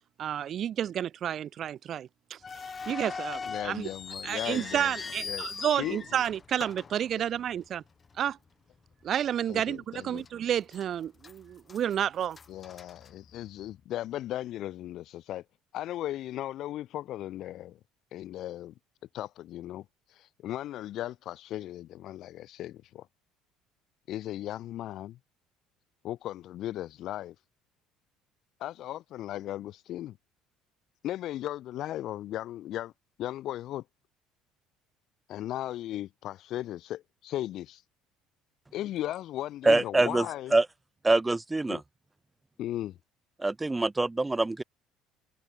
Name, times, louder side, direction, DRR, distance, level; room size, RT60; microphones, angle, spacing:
voice 1, 0.2-2.4 2.9-3.9 4.2-7.8 8.2-8.4 9.0-12.4, right 10 dB, 45° right, 1.0 m, -30 dB
sound 1, 2.4-7.8 8.0-8.1 8.9-9.1 9.6-9.7 10.3-10.9 11.2-13.7, left 5 dB, 25° left, 4.2 m, -40 dB
voice 2, 3.5-4.9 5.2-5.5 5.8-6.0 9.5-10.3 12.5-15.4 15.7-17.8 18.1-18.7 19.1-19.8 20.2-23.1 24.1-25.2 26.0-27.3 28.6-30.2 31.0-32.9 33.2-33.8 35.3-37.8 38.7-40.5 41.7-41.8 42.6-43.0, left 13 dB, 55° left, 2.6 m, -36 dB
voice 3, 39.6-40.3 40.5-40.7 41.0-41.8 43.4-44.6, right 2 dB, 10° right, 0.7 m, -24 dB
cardioid pair, 125°, 0 cm